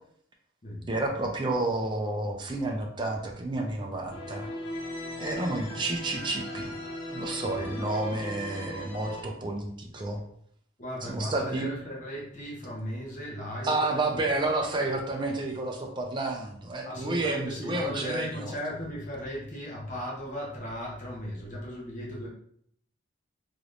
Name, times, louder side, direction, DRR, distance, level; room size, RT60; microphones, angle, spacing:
voice 1, 0.9-4.5 5.2-6.8 7.1-10.2 11.0-11.7 13.6-18.5, right 2 dB, 25° right, 1 dB, 0.5 m, -30 dB
sound 1, 4.1-9.2, left 1 dB, 65° left, 0.9 m, -38 dB
voice 2, 10.8-14.3 16.8-22.3, equal, 40° left, -4 dB, 0.9 m, -37 dB
3.3 x 3.0 x 2.5 m, 0.64 s
head